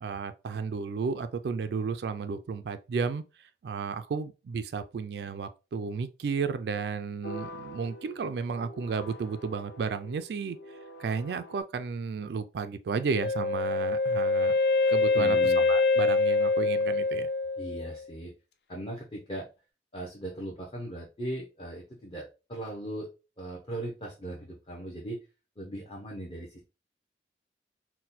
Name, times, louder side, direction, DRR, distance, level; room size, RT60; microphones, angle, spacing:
voice 1, 0.0-10.6 11.0-14.6 14.9-17.3, right 5 dB, 65° right, 0.3 m, -33 dB
sound 1, 7.2-11.6, left 1 dB, 90° left, 1.2 m, -45 dB
Wind instrument woodwind instrument, 13.2-18.1, left 3 dB, 70° left, 0.6 m, -25 dB
voice 2, 15.1-15.7 17.6-18.3 18.7-19.5 19.9-23.1 23.4-25.2 25.6-26.6, right 1 dB, 30° left, 0.7 m, -38 dB
4.2 x 2.2 x 4.0 m
head